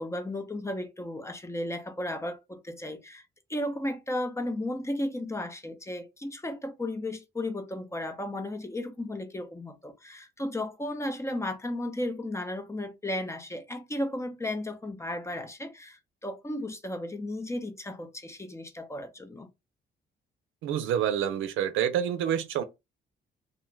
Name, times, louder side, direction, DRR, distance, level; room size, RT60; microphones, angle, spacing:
voice 1, 0.0-3.2 3.5-19.5, left 1 dB, 15° left, 0.6 m, -34 dB
voice 2, 20.6-22.6, right 9 dB, 85° right, 0.5 m, -27 dB
2.4 x 2.3 x 3.1 m
cardioid pair, 90°, 20 cm